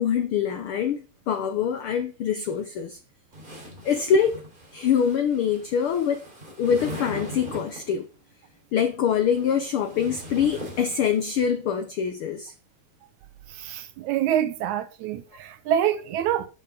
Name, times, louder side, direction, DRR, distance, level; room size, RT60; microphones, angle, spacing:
voice 1, 0.0-3.0 3.8-4.4 4.7-6.2 6.6-8.1 8.7-12.5, left 7 dB, 90° left, 1.2 m, -24 dB
sound 1, 3.3-8.0 9.0-11.5, equal, 15° right, 3.6 m, -40 dB
voice 2, 13.5-16.5, right 10 dB, 75° right, 2.0 m, -26 dB
10.5 x 6.8 x 5.0 m
omnidirectional pair, 3.5 m